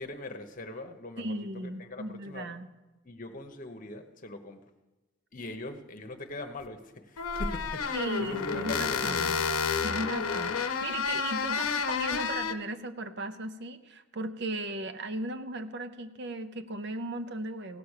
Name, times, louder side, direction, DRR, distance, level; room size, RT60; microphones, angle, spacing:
voice 1, 0.0-2.5 3.0-4.6 5.3-9.4, left 2 dB, 40° left, 6 dB, 1.0 m, -41 dB
voice 2, 1.2-2.7 7.9-9.4 9.8-17.8, right 2 dB, 55° right, 10 dB, 0.7 m, -36 dB
sound 1, 6.6-6.7 7.2-12.5, left 6 dB, 90° left, 0.7 m, -30 dB
16.5 x 5.9 x 6.6 m, 1.1 s
head